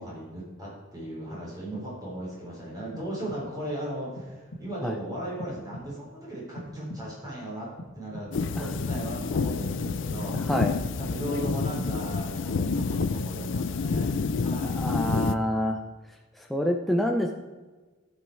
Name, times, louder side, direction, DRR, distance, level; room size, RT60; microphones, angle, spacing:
voice 1, 0.0-7.7 7.9-10.5 11.0-14.8, right 1 dB, 20° right, -5 dB, 3.6 m, -37 dB
sound 1, 2.9-3.7 4.2-4.9 5.4-6.2 6.5-7.4 7.8-8.6 9.0-9.8 10.2-11.0 11.4-12.2 12.6-13.4, left 1 dB, 90° left, 1.4 m, -43 dB
sound 2, 8.3-15.3, left 4 dB, 65° left, 0.4 m, -28 dB
voice 2, 10.3-10.8 14.6-15.8 16.4-17.4, equal, ahead, 2 dB, 0.5 m, -27 dB
14.5 x 5.4 x 4.6 m, 1.3 s
head